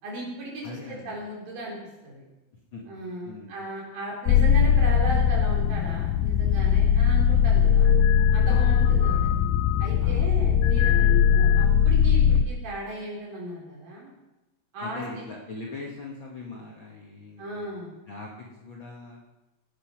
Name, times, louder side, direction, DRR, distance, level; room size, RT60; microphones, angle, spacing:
voice 1, 0.0-1.8 2.0-2.3 2.9-7.9 8.3-9.3 9.8-14.1 14.7-15.3 17.4-17.9, right 1 dB, 75° right, -3 dB, 5.7 m, -36 dB
voice 2, 0.6-1.2 2.7-2.8 3.2-3.6 8.5-9.0 10.0-10.3 14.8-17.7 18.1-19.2, left 3 dB, 45° left, -3 dB, 1.7 m, -41 dB
sound 1, 4.3-12.5, left 8 dB, 80° left, 2.3 m, -20 dB
16.0 x 9.6 x 5.9 m, 1.0 s
omnidirectional pair, 4.1 m